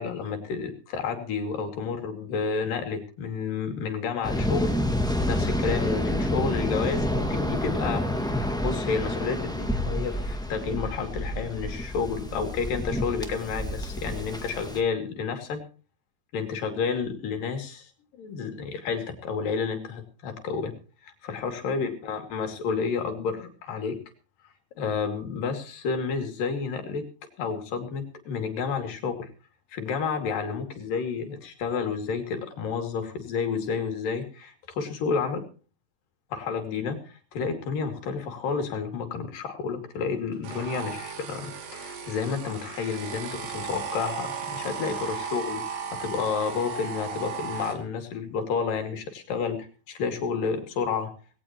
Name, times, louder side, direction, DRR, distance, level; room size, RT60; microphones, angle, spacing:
voice 1, 0.0-4.7 5.3-15.6 16.3-17.9 18.2-20.7 21.0-24.0 24.8-27.0 27.4-29.3 29.7-35.5 36.3-51.1, left 5 dB, 75° left, 6 dB, 4.2 m, -30 dB
Waves surf, 4.2-14.8, left 1 dB, 5° left, 0.6 m, -29 dB
sound 1, 40.4-47.8, right 6 dB, 75° right, 4.2 m, -35 dB
19.0 x 17.5 x 3.0 m, 0.36 s
omnidirectional pair, 4.0 m